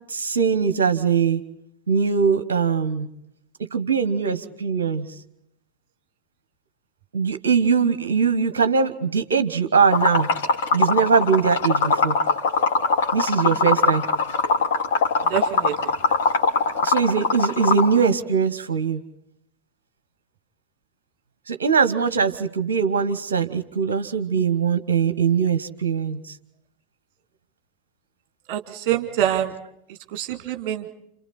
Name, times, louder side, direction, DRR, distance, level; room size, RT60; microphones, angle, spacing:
voice 1, 0.1-1.4 1.9-3.1 3.7-5.1 7.1-10.3 10.7-12.2 13.1-14.0 16.1-16.2 16.8-19.0 21.5-26.3, right 6 dB, 65° right, 11 dB, 1.0 m, -21 dB
Liquid, 9.9-17.9, left 3 dB, 55° left, 3.2 m, -21 dB
voice 2, 15.3-15.9 28.5-29.5 30.1-30.9, right 11 dB, 45° right, 6 dB, 2.3 m, -25 dB
29.0 x 27.5 x 4.2 m, 0.77 s
figure-of-eight pair, 90°, 0 cm